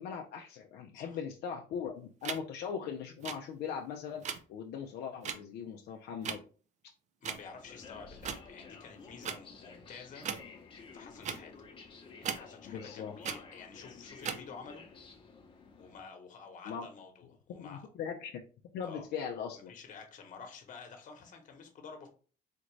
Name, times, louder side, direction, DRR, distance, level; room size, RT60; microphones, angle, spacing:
voice 1, 0.0-6.4 12.7-13.2 16.7-16.9 17.6-18.4 18.7-19.7, left 7 dB, 75° left, 2 dB, 0.5 m, -40 dB
sound 1, 2.2-2.4 3.2-3.3 4.2-4.4 5.2-5.4 6.2-6.3 7.2-7.4 8.2-8.4 9.2-9.4 10.2-10.4 11.2-11.4 12.2-12.4 13.2-13.4 14.2-14.4, right 7 dB, 45° right, 0.5 m, -36 dB
voice 2, 7.2-10.3 10.7-11.5 12.2-14.8 15.8-17.9 18.8-19.1 19.7-22.1, left 5 dB, 50° left, 4 dB, 1.1 m, -50 dB
sound 2, 7.3-16.0, left 4 dB, 30° left, 0.9 m, -52 dB
4.3 x 2.5 x 3.1 m, 0.39 s
cardioid pair, 110°, 17 cm